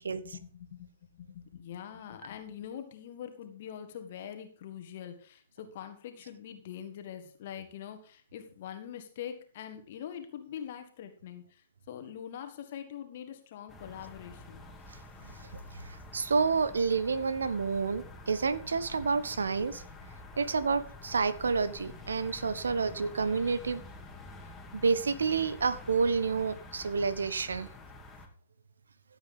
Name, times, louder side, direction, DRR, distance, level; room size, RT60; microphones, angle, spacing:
voice 1, 0.2-14.6, left 9 dB, 50° left, 7 dB, 1.7 m, -44 dB
sound 1, 13.7-28.3, left 3 dB, 15° left, 2.6 m, -48 dB
voice 2, 15.7-19.8 20.4-23.8 24.7-27.7, right 5 dB, 75° right, 14 dB, 1.2 m, -29 dB
15.0 x 8.0 x 3.8 m, 0.43 s
figure-of-eight pair, 110°, 0 cm